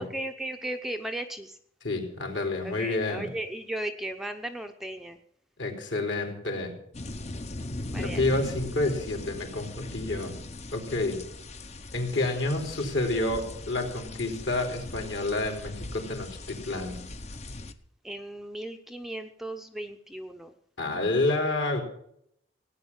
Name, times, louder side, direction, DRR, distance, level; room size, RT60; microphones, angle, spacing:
voice 1, 0.0-1.6 2.6-5.2 7.9-8.2 18.0-20.5, right 1 dB, ahead, 5 dB, 0.7 m, -36 dB
voice 2, 1.8-3.3 5.6-6.7 8.0-10.3 10.7-11.2 11.9-17.0 20.8-21.8, left 2 dB, 65° left, 3 dB, 3.7 m, -29 dB
sound 1, 6.9-17.7, left 2 dB, 35° left, 0.8 m, -39 dB
17.0 x 9.6 x 7.3 m, 0.71 s
head